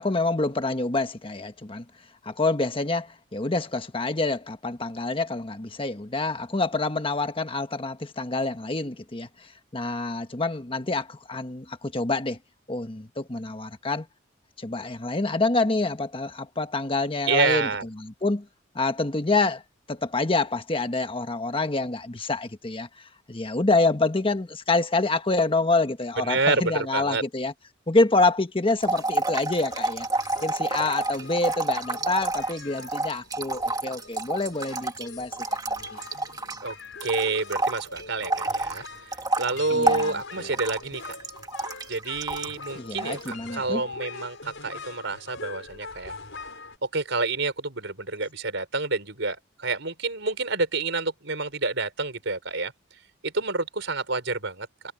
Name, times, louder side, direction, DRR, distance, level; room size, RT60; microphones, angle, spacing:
voice 1, 0.0-1.9 2.2-12.4 12.7-14.1 14.6-17.7 18.0-18.5 18.7-19.6 19.9-27.5 27.9-30.1 30.4-35.6 35.9-36.0 39.7-40.5 42.7-43.8, left 3 dB, 25° left, 1.3 m, -27 dB
voice 2, 17.3-17.9 26.2-27.2 36.6-36.8 37.0-38.8 39.4-41.2 41.9-46.1 46.8-52.7 53.2-54.9, right 3 dB, 65° right, 5.4 m, -28 dB
sound 1, 28.8-36.7 37.0-42.7 43.0-43.3, right 2 dB, 20° right, 2.0 m, -29 dB
sound 2, 29.7-46.8, left 4 dB, 75° left, 5.9 m, -43 dB
head